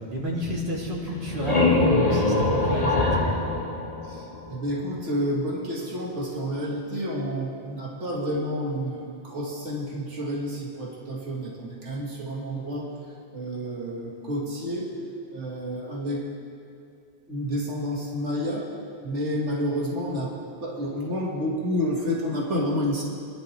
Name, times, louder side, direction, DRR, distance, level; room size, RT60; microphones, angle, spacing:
voice 1, 0.1-3.4, equal, 45° right, -5 dB, 2.9 m, -31 dB
sound 1, 1.1-4.7, left 2 dB, 35° left, 1.5 m, -23 dB
voice 2, 4.0-12.9 13.3-14.9 15.3-16.3 17.3-18.7 19.0-23.0, equal, 90° right, -3 dB, 2.1 m, -29 dB
24.5 x 11.5 x 3.2 m, 2.4 s
omnidirectional pair, 1.2 m